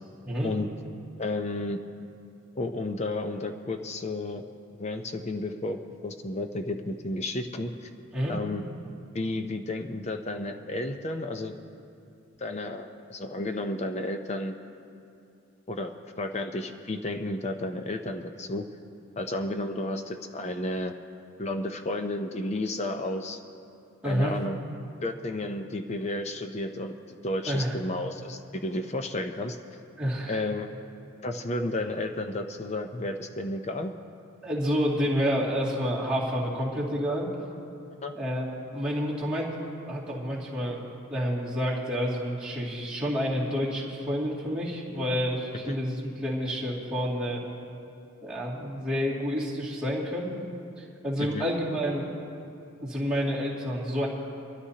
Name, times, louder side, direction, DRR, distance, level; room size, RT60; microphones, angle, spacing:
voice 1, 1.2-1.8 2.6-4.4 4.8-7.9 8.3-8.6 9.1-11.6 12.4-14.6 15.7-18.6 19.2-20.9 21.4-23.4 24.0-24.6 25.0-29.6 30.3-30.7 31.2-33.9 38.0-38.1 45.7-45.8 51.2-51.4, left 2 dB, 30° left, 6 dB, 0.5 m, -32 dB
voice 2, 24.0-24.4 27.5-27.8 30.0-30.4 34.4-37.3 38.1-39.5 39.8-40.8 41.1-47.4 48.2-50.3 50.8-52.0 52.8-54.1, equal, 5° right, -8 dB, 2.3 m, -29 dB
23.5 x 13.0 x 2.8 m, 2.6 s
head